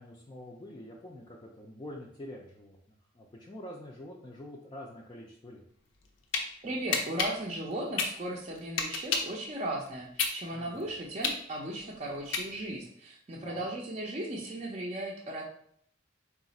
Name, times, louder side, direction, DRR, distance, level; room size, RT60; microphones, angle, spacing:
voice 1, 0.0-5.6 10.5-10.9 13.4-13.6, left 1 dB, 25° left, -2 dB, 0.4 m, -46 dB
sound 1, 5.9-6.4 6.9-9.4 9.8-12.8, left 5 dB, 90° left, 0.6 m, -31 dB
voice 2, 6.6-15.4, right 1 dB, 35° right, -3 dB, 0.5 m, -36 dB
3.9 x 2.4 x 4.0 m, 0.66 s
head